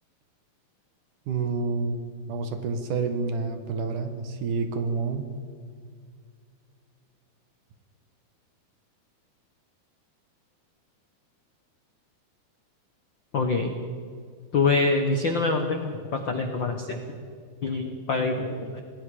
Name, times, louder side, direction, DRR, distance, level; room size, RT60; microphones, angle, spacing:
voice 1, 1.3-5.3, right 4 dB, 65° right, 7 dB, 2.8 m, -29 dB
voice 2, 13.3-13.7 14.5-17.0 17.6-18.8, left 3 dB, 70° left, 5 dB, 1.1 m, -25 dB
26.5 x 19.5 x 5.0 m, 2.1 s
omnidirectional pair, 4.2 m